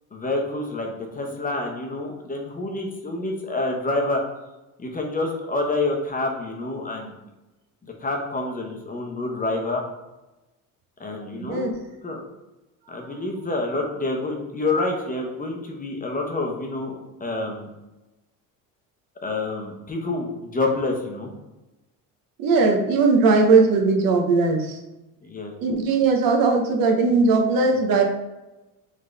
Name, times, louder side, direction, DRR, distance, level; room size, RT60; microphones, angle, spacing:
voice 1, 0.1-4.2 4.8-7.1 7.8-9.8 11.0-11.7 12.0-12.2 12.9-16.9 17.2-17.7 19.2-21.3 25.2-25.5, left 2 dB, 20° left, 1 dB, 0.9 m, -27 dB
voice 2, 11.4-11.7 22.4-24.8 25.6-28.0, right 4 dB, 60° right, 2 dB, 0.9 m, -19 dB
3.9 x 3.7 x 3.3 m, 1.0 s
supercardioid pair, 95°, 38 cm